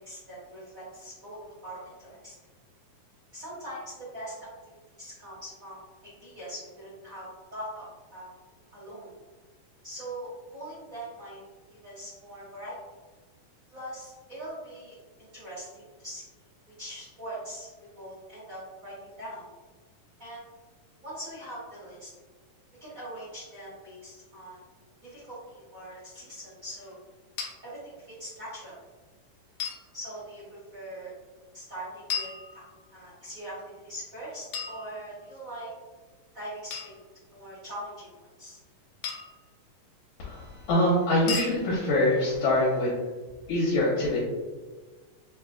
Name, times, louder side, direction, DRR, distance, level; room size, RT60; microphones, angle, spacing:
voice 1, 0.0-2.3 3.3-4.5 5.0-7.9 8.1-8.3 8.7-9.1 9.8-11.4 11.7-12.8 13.7-15.0 15.3-16.2 16.8-19.4 20.2-20.5 21.0-22.1 22.8-24.6 25.0-26.9 27.6-28.8 29.9-31.1 31.5-32.3 32.9-35.7 36.3-36.9 37.3-38.1 38.4-38.6, right 1 dB, 55° right, -10 dB, 0.9 m, -42 dB
sound 1, 27.4-27.5 29.6-29.9 32.1-33.0 34.5-35.4 36.7-37.0 39.0-39.4 41.3-41.6, left 6 dB, 85° left, 1.4 m, -35 dB
voice 2, 40.2-43.0 43.5-44.2, left 1 dB, 70° left, -7 dB, 2.1 m, -24 dB
6.8 x 2.3 x 2.3 m, 1.3 s
omnidirectional pair, 4.0 m